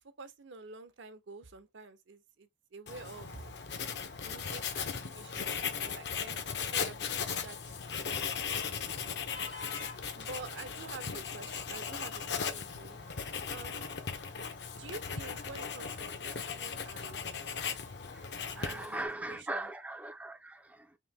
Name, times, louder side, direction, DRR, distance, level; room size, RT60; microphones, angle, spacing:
voice 1, 0.2-3.5 4.2-8.6 10.1-13.1 13.5-13.9 14.8-17.2 18.5-19.7, right 3 dB, 75° right, 0.7 m, -48 dB
Writing, 2.9-19.1, left 6 dB, 60° left, 0.7 m, -38 dB
sound 1, 7.4-17.5, left 4 dB, 85° left, 1.5 m, -53 dB
voice 2, 18.1-21.0, right 2 dB, 5° right, 0.3 m, -40 dB
3.8 x 2.6 x 3.3 m
head